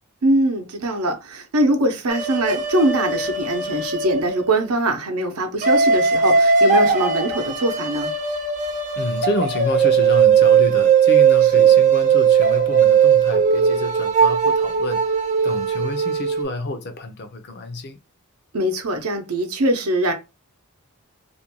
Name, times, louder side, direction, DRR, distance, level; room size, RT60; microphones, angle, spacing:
voice 1, 0.2-8.1 11.6-11.7 18.5-20.1, right 1 dB, 85° right, 0.7 m, -22 dB
sound 1, 2.1-4.6 5.6-16.4, right 6 dB, 35° right, 0.5 m, -18 dB
voice 2, 9.0-15.0 15.4-18.0, left 2 dB, 50° left, 0.5 m, -29 dB
2.5 x 2.2 x 2.9 m
head